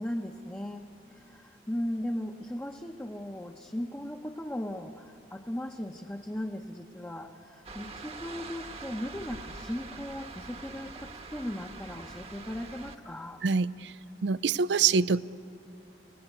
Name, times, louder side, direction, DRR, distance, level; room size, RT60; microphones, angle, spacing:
voice 1, 0.0-13.4, left 1 dB, 10° left, 1 dB, 0.7 m, -37 dB
sound 1, 7.6-13.0, right 3 dB, 35° right, 1.1 m, -44 dB
voice 2, 13.4-13.9 14.2-15.2, right 5 dB, 80° right, 17 dB, 0.5 m, -25 dB
30.0 x 17.5 x 8.1 m, 2.6 s
head